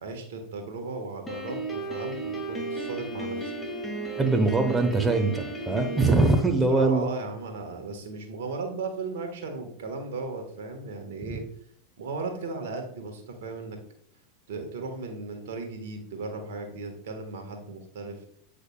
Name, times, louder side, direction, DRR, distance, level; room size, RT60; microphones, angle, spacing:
voice 1, 0.0-3.5 6.7-11.4 12.0-13.8 14.5-18.2, right 3 dB, 70° right, 4 dB, 1.3 m, -36 dB
Piano, 1.3-6.4, right 2 dB, 15° left, 1.4 m, -34 dB
voice 2, 4.2-7.1, right 3 dB, 15° right, 4 dB, 0.9 m, -22 dB
8.3 x 5.0 x 2.3 m, 0.65 s
hypercardioid pair, 90°, 0 cm